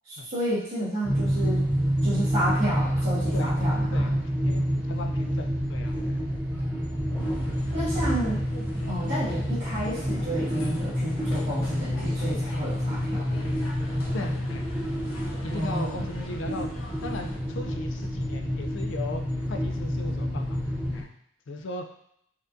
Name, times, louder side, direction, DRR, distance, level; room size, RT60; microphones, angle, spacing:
voice 1, 0.1-1.6 2.0-4.1 7.7-8.4 8.8-13.2 15.5-16.0, equal, 45° right, -14 dB, 1.5 m, -31 dB
sound 1, 1.0-21.0, equal, 10° right, 0.6 m, -28 dB
voice 2, 4.4-6.2 14.1-14.6 15.4-16.7 17.0-19.2 19.5-21.1 21.5-21.9, left 2 dB, 60° left, 5 dB, 0.4 m, -37 dB
sound 2, 7.2-17.4, left 1 dB, 85° left, 0.8 m, -44 dB
4.4 x 2.6 x 2.5 m, 0.72 s
head